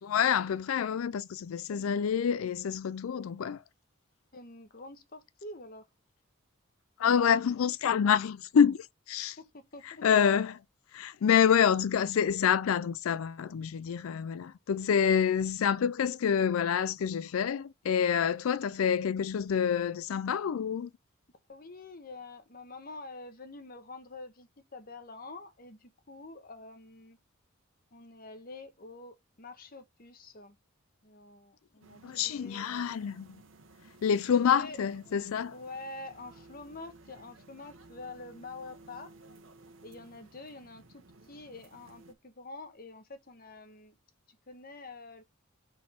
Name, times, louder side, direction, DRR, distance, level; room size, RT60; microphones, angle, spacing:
voice 1, 0.0-3.6 7.0-9.4 9.9-10.6 10.9-20.9 32.0-33.4 34.0-35.5, left 7 dB, 85° left, 0.4 m, -27 dB
voice 2, 4.3-5.9 9.4-10.0 21.5-27.2 27.9-30.6 31.0-33.0 34.2-34.8 35.5-39.1 39.8-44.0 44.3-45.2, left 2 dB, 45° left, 1.1 m, -47 dB
sound 1, 31.8-42.1, right 2 dB, 65° right, 1.1 m, -56 dB
6.1 x 4.0 x 4.3 m
head